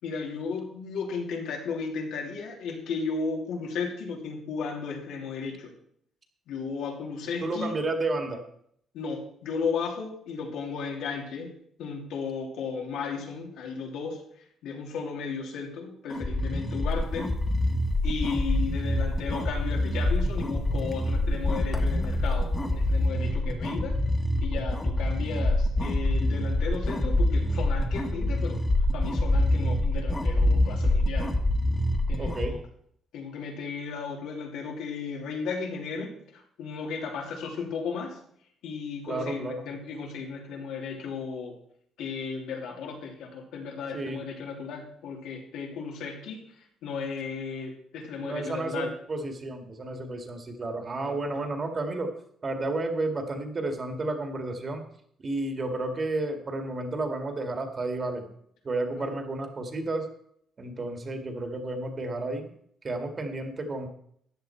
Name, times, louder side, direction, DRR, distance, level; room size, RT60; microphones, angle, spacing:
voice 1, 0.0-5.7 6.5-7.7 8.9-11.5 11.8-14.2 14.6-17.4 18.0-24.0 24.4-28.6 28.9-31.3 32.1-32.6 33.1-38.2 38.6-41.6 42.0-46.4 46.8-48.9 51.0-51.2 59.0-59.1, left 5 dB, 90° left, 0 dB, 2.9 m, -35 dB
voice 2, 7.4-8.4 32.2-32.6 39.1-39.7 43.9-44.3 48.2-52.1 52.4-54.8 55.2-58.3 58.6-60.1 60.6-62.5 62.8-63.9, right 2 dB, 30° right, 5 dB, 1.9 m, -31 dB
sound 1, 16.1-32.5, left 1 dB, 15° left, 1.5 m, -26 dB
sound 2, 16.9-17.2 17.6-17.7 17.9-18.0 18.3-18.7 19.2-19.3 19.7-20.5 20.8-23.0, left 4 dB, 30° left, 0.9 m, -33 dB
14.0 x 9.8 x 4.5 m, 0.67 s
cardioid pair, 140°, 0 cm